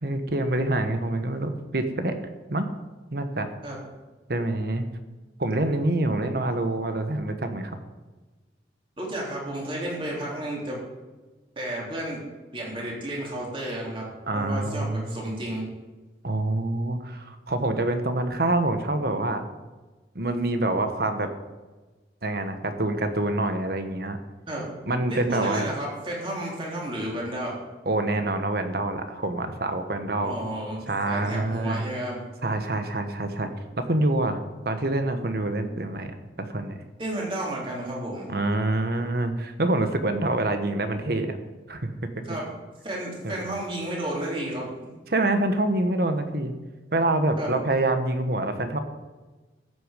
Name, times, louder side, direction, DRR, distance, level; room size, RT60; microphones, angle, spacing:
voice 1, 0.0-2.1 2.5-2.7 3.1-3.5 4.3-4.8 5.4-7.7 14.3-15.2 16.2-19.4 20.1-21.3 22.2-24.2 24.9-25.7 27.8-30.4 30.9-31.8 32.4-33.5 33.8-34.4 34.6-36.8 38.3-41.4 41.7-41.9 42.2-42.3 43.2-43.5 45.1-46.5 46.9-48.8, right 2 dB, 60° right, 7 dB, 1.2 m, -26 dB
voice 2, 9.0-10.8 11.5-12.2 12.5-14.1 14.3-15.6 24.5-24.7 25.1-27.6 30.2-32.2 37.0-38.3 42.2-42.5 42.8-44.7 47.4-47.6, right 1 dB, 30° right, -3 dB, 3.4 m, -32 dB
14.0 x 8.1 x 5.2 m, 1.2 s
head